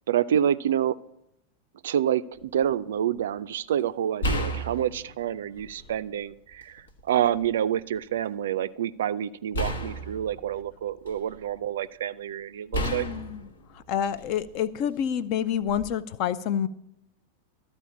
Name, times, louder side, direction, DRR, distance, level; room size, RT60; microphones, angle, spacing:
voice 1, 0.1-1.0 1.8-13.1, right 10 dB, 60° right, 15 dB, 0.4 m, -28 dB
sound 1, 2.4-2.6 4.2-6.0 6.5-7.5 9.5-11.5 12.7-14.6 15.7-15.9, equal, 70° left, 1.1 m, -33 dB
voice 2, 12.8-13.5 13.7-16.7, left 9 dB, 40° left, 16 dB, 0.5 m, -28 dB
13.0 x 4.4 x 8.4 m, 0.80 s
figure-of-eight pair, 90°, 0 cm